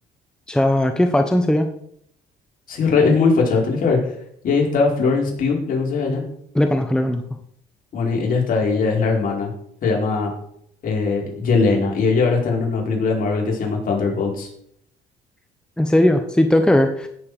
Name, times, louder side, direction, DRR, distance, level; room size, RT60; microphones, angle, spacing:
voice 1, 0.5-1.7 6.5-7.2 15.8-17.1, left 1 dB, 5° left, 6 dB, 1.0 m, -18 dB
voice 2, 2.7-4.0 4.4-6.2 7.9-9.5 9.8-10.3 10.8-14.5, left 4 dB, 55° left, -1 dB, 4.7 m, -20 dB
16.5 x 7.3 x 4.9 m, 0.69 s
cardioid pair, 110°, 17 cm